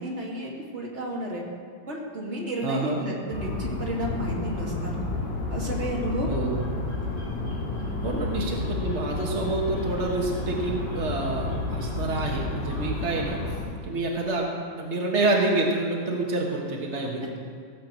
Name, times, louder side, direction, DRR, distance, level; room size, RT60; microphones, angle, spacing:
voice 1, 0.0-1.4 1.9-5.0 5.5-6.3 7.8-7.9, right 1 dB, 25° right, -3 dB, 2.1 m, -32 dB
voice 2, 2.6-3.0 6.3-6.6 8.0-13.6 13.8-14.5 14.8-17.4, right 2 dB, 60° right, -1 dB, 0.7 m, -28 dB
sound 1, 3.3-13.6, left 2 dB, 60° left, 4.8 m, -31 dB
17.0 x 7.6 x 7.5 m, 2.3 s
omnidirectional pair, 3.5 m